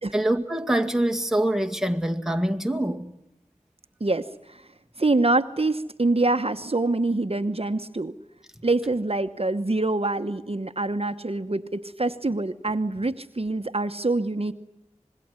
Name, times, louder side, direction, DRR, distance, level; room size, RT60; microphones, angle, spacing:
voice 1, 0.1-3.1, right 1 dB, 5° right, 2.1 m, -24 dB
voice 2, 4.0-4.7 5.0-8.1 8.6-14.5, right 2 dB, 50° right, 1.0 m, -25 dB
26.0 x 21.5 x 9.6 m
wide cardioid pair, 40°, 12 cm